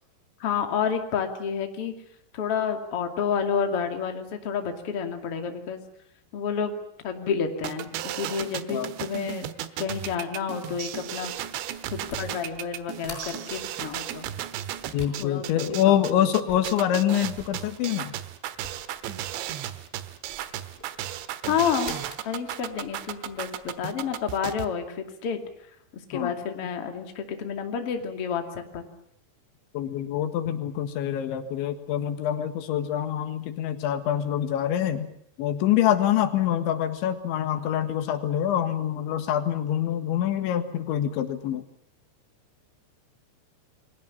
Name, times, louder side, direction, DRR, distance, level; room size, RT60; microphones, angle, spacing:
voice 1, 0.4-1.9 2.3-5.8 6.3-6.7 7.0-9.5 9.8-11.3 11.9-14.3 15.2-16.3 21.4-22.0 22.2-25.4 25.9-28.9, left 7 dB, 40° left, 5 dB, 2.9 m, -30 dB
sound 1, 7.6-24.7, right 12 dB, 80° right, 3.4 m, -35 dB
sound 2, 10.9-24.6, equal, 10° left, 6.8 m, -49 dB
voice 2, 14.9-18.1 26.1-26.3 29.7-35.1 35.4-41.6, left 10 dB, 85° left, 9 dB, 4.0 m, -25 dB
29.5 x 22.0 x 7.1 m, 0.67 s
omnidirectional pair, 5.3 m